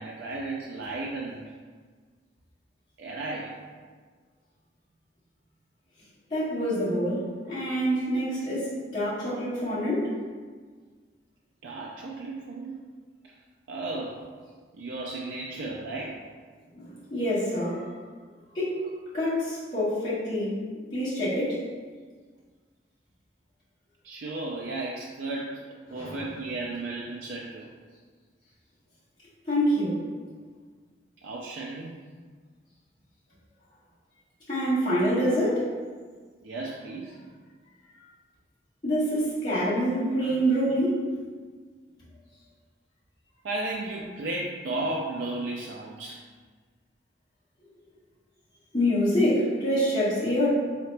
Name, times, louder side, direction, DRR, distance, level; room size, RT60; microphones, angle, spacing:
voice 1, 0.0-1.4 3.0-3.6 11.6-12.8 13.7-14.2 14.8-16.2 24.0-25.6 25.9-27.7 31.2-32.0 36.4-37.1 43.4-46.2, right 2 dB, 85° right, -3 dB, 0.4 m, -34 dB
voice 2, 6.3-10.1 16.7-17.9 18.5-18.8 19.1-20.6 20.9-21.6 25.9-26.2 29.4-30.0 34.5-35.7 38.8-41.0 48.7-50.5, equal, 25° left, -12 dB, 1.3 m, -26 dB
4.1 x 2.8 x 3.2 m, 1.5 s
head